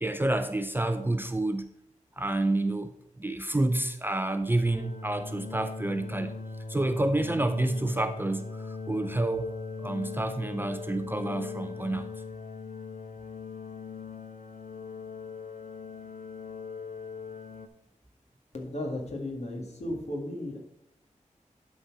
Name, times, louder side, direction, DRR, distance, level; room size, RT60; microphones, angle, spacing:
voice 1, 0.0-1.7 2.2-6.3 6.7-9.5 9.8-12.1, right 2 dB, 15° right, 9 dB, 0.5 m, -29 dB
sound 1, 4.7-17.7, left 4 dB, 80° left, 0.8 m, -40 dB
voice 2, 18.5-20.6, left 1 dB, 55° left, 1 dB, 2.0 m, -35 dB
11.0 x 4.2 x 4.8 m, 0.84 s
wide cardioid pair, 95°, 13 cm